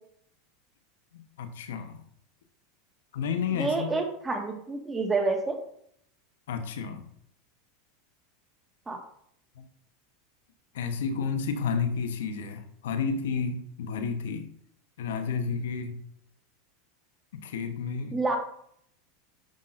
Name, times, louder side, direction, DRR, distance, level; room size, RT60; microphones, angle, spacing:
voice 1, 1.1-2.0 3.1-3.9 6.5-7.0 9.5-9.7 10.7-14.5 15.0-16.0 17.4-18.2, left 5 dB, 80° left, 8 dB, 1.1 m, -31 dB
voice 2, 3.5-5.6 8.9-9.0 18.1-18.4, right 3 dB, 15° right, 3 dB, 1.8 m, -28 dB
10.5 x 5.6 x 2.6 m, 0.67 s
hypercardioid pair, 105°, 0 cm